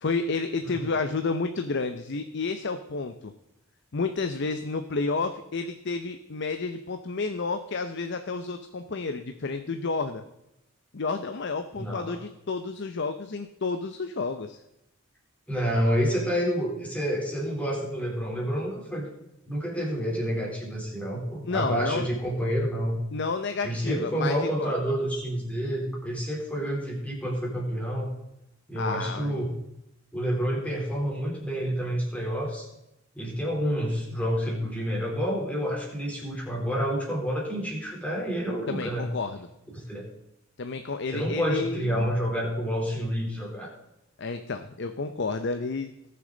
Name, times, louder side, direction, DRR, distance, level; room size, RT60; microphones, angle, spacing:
voice 1, 0.0-3.3 3.9-10.2 10.9-14.6 21.4-22.1 23.1-24.7 28.8-29.4 38.7-39.5 40.6-42.1 44.2-45.9, left 4 dB, 55° left, 8 dB, 0.6 m, -30 dB
voice 2, 11.8-12.2 15.5-19.1 19.4-23.0 23.6-28.1 28.7-29.5 30.1-32.7 33.1-39.1 39.7-40.0 41.1-43.7, equal, 5° left, -2 dB, 3.4 m, -29 dB
19.5 x 6.8 x 3.9 m, 0.87 s
head